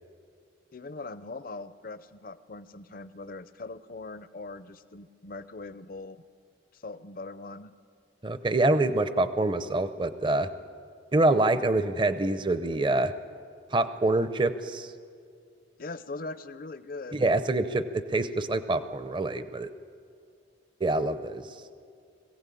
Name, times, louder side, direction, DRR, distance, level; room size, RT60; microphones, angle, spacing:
voice 1, 0.7-6.2 6.7-7.7 15.8-17.2, left 3 dB, 45° left, 14 dB, 0.6 m, -41 dB
voice 2, 8.2-10.5 11.1-13.1 13.7-14.9 17.1-19.7 20.8-21.6, right 2 dB, 25° right, 12 dB, 0.6 m, -26 dB
21.0 x 16.0 x 8.4 m, 2.3 s
head